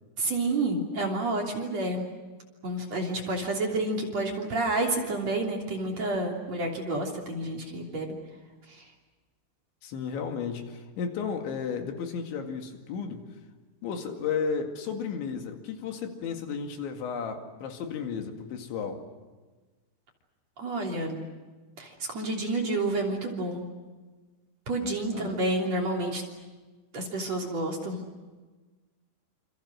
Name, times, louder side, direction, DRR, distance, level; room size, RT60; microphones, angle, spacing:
voice 1, 0.2-2.0 2.6-8.1 8.7-8.8 20.6-21.2 21.8-23.7 24.7-26.2 26.9-28.0, right 2 dB, 40° right, 4.0 m, -29 dB
voice 2, 9.8-13.3 13.8-19.1 25.1-25.4, left 6 dB, 80° left, 4.5 m, -33 dB
28.0 x 27.5 x 6.4 m
omnidirectional pair, 5.3 m